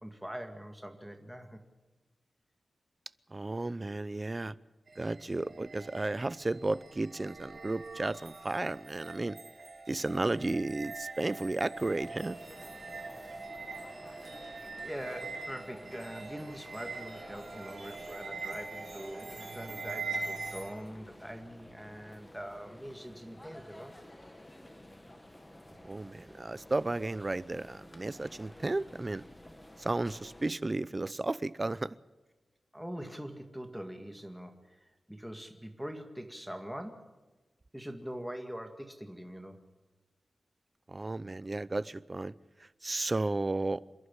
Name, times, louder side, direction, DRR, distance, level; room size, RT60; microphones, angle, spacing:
voice 1, 0.0-1.6 14.5-23.9 32.7-37.1 37.7-39.6, equal, 5° right, 2.0 m, -43 dB
voice 2, 3.3-4.5 5.0-9.4 9.9-12.4 25.8-29.2 29.8-31.9 40.9-42.3 42.8-43.8, right 2 dB, 25° right, 0.6 m, -33 dB
sound 1, 4.9-20.7, right 4 dB, 60° right, 5.4 m, -43 dB
sound 2, 11.7-30.5, left 1 dB, 15° left, 1.9 m, -52 dB
27.5 x 11.5 x 9.9 m
wide cardioid pair, 125°, 0 cm